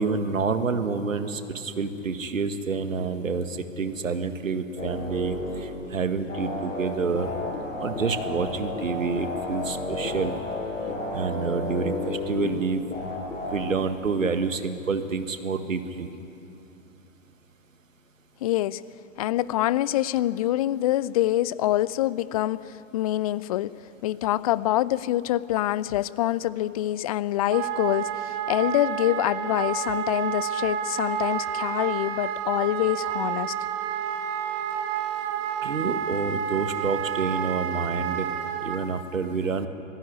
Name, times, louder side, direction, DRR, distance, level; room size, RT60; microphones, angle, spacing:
voice 1, 0.0-7.3 7.8-10.4 11.1-12.8 13.5-16.1 35.6-38.3 38.6-39.7, right 4 dB, 75° right, 9 dB, 1.8 m, -28 dB
sound 1, 4.8-5.6 6.3-12.5 12.9-13.6, left 2 dB, 70° left, 7.9 m, -32 dB
voice 2, 18.4-18.8 19.2-23.7 24.0-33.5, left 14 dB, 30° left, 19 dB, 0.5 m, -25 dB
Wind instrument woodwind instrument, 27.5-38.8, right 9 dB, 30° right, 2.6 m, -30 dB
26.0 x 17.0 x 9.8 m, 2.9 s
figure-of-eight pair, 110°, 40 cm